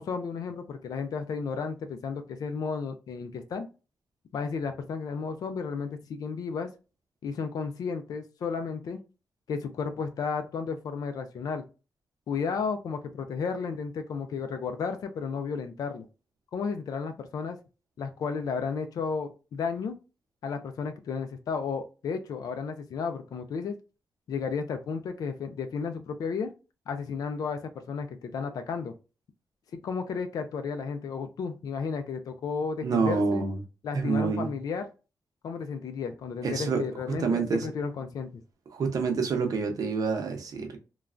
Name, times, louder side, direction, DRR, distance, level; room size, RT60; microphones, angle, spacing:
voice 1, 0.0-3.7 4.3-6.7 7.2-9.0 9.5-11.6 12.3-16.1 16.5-17.6 18.0-19.9 20.4-23.8 24.3-26.5 26.9-28.9 29.7-33.4 33.8-34.9 35.4-38.3, left 5 dB, 70° left, 0.4 m, -33 dB
voice 2, 32.8-33.6 33.9-34.5 36.4-36.8 37.2-37.7 38.7-40.8, right 4 dB, 65° right, 0.7 m, -27 dB
3.1 x 2.3 x 2.4 m
wide cardioid pair, 135°, 7 cm